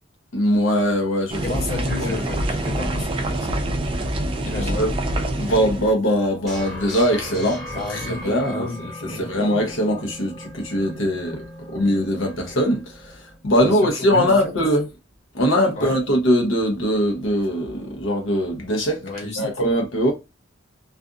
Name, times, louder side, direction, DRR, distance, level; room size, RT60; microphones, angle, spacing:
voice 1, 0.3-1.6 2.0-2.1 4.7-4.9 5.4-11.4 11.7-14.9 15.3-19.0 19.4-20.1, equal, 80° left, 0.8 m, -21 dB
sound 1, 1.3-5.9, right 1 dB, 25° right, 0.4 m, -25 dB
voice 2, 1.4-3.6 4.4-4.8 7.7-8.8 9.0-9.3 13.6-13.7 14.1-14.5 15.8-15.9 19.0-19.4, left 3 dB, 35° left, 1.0 m, -31 dB
sound 2, 6.5-13.4, equal, ahead, 1.0 m, -38 dB
2.5 x 2.5 x 2.4 m
head